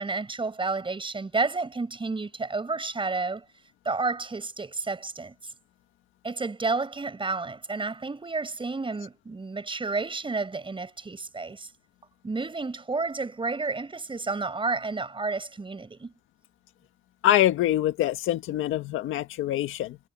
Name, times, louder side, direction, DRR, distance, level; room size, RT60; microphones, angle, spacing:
voice 1, 0.0-3.4 3.9-5.5 6.2-11.7 12.2-16.1, right 3 dB, 25° right, 7.0 m, -31 dB
voice 2, 17.2-20.0, left 13 dB, 90° left, 1.7 m, -24 dB
cardioid pair, 90°, 20 cm